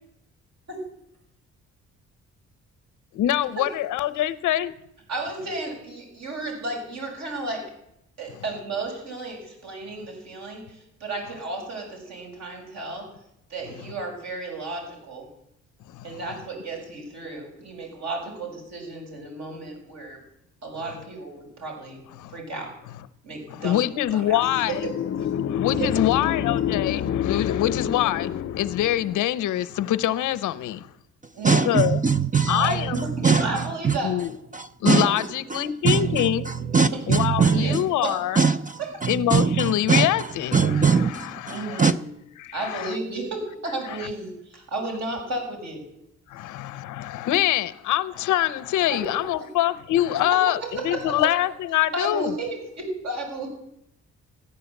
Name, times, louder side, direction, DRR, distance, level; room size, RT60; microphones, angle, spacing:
voice 1, 3.1-4.7 15.9-16.2 22.2-22.4 23.5-24.9 25.5-30.9 31.5-32.0 32.5-33.1 34.0-34.3 34.8-36.5 37.1-38.4 39.1-41.9 42.4-43.0 43.9-44.1 46.3-52.3, left 13 dB, 85° left, 0.8 m, -25 dB
voice 2, 5.1-7.7 8.2-13.1 13.5-15.3 16.0-20.2 20.6-22.0 22.3-22.7 23.2-23.8 24.1-24.4 25.7-25.9 31.4-31.7 32.5-34.1 37.4-38.2 38.8-38.9 41.5-42.1 42.5-45.8 49.1-49.5 50.3-50.4 50.8-51.3 51.9-53.5, right 2 dB, 65° right, 6.9 m, -33 dB
sound 1, 24.3-29.2, left 9 dB, 50° left, 0.6 m, -28 dB
voice 3, 31.4-34.0 34.5-37.8 38.4-42.0, right 5 dB, 25° right, 0.5 m, -22 dB
14.5 x 10.0 x 8.1 m
cardioid pair, 90°, 30 cm